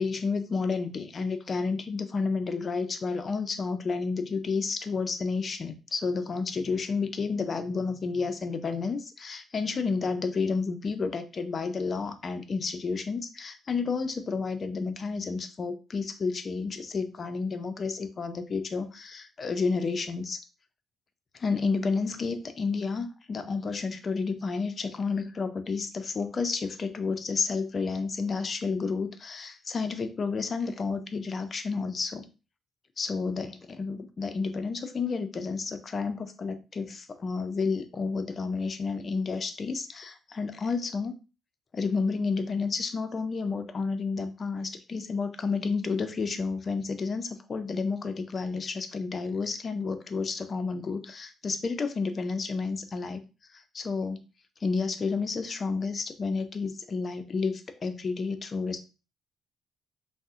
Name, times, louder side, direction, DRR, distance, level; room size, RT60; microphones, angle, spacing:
voice 1, 0.0-20.4 21.3-32.3 33.0-41.2 41.7-53.2 53.5-54.2 54.6-58.8, left 4 dB, 40° left, 9 dB, 0.4 m, -31 dB
2.6 x 2.0 x 3.5 m, 0.31 s
cardioid pair, 90°, 0 cm